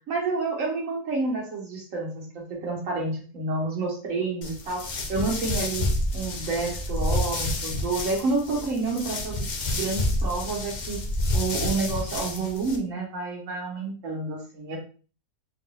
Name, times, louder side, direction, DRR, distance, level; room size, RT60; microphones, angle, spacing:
voice 1, 0.1-9.4 9.7-11.0 11.3-14.8, right 3 dB, 55° right, -1 dB, 1.5 m, -29 dB
sound 1, 4.4-12.8, left 1 dB, 60° left, 0.4 m, -29 dB
3.9 x 3.6 x 2.3 m, 0.37 s
omnidirectional pair, 1.7 m